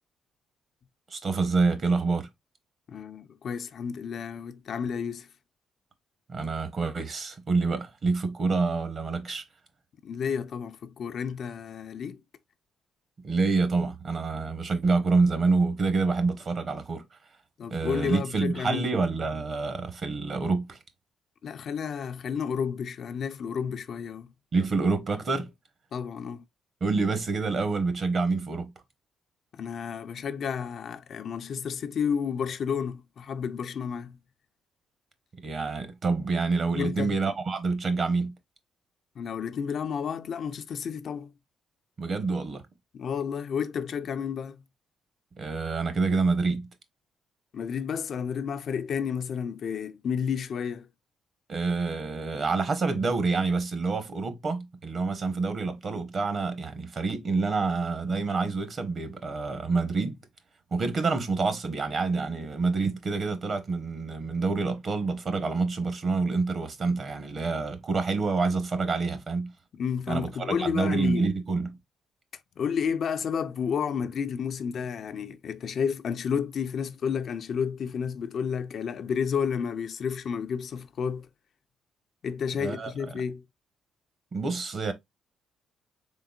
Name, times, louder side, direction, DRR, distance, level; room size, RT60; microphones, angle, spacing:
voice 1, 1.1-2.3 6.3-9.4 13.2-17.0 17.7-20.8 24.5-25.5 26.8-28.7 35.4-38.3 42.0-42.6 45.4-46.7 51.5-60.2 60.7-69.5 70.1-71.7 82.6-82.9 84.3-84.9, right 4 dB, 45° right, 0.9 m, -27 dB
voice 2, 2.9-5.3 10.0-12.2 17.6-18.9 21.4-24.3 25.9-26.4 29.5-34.2 36.7-37.1 39.2-41.3 42.9-44.6 47.5-50.9 69.8-71.3 72.6-81.3 82.2-83.4, left 7 dB, 60° left, 0.4 m, -31 dB
3.8 x 3.5 x 2.4 m
cardioid pair, 90°, 0 cm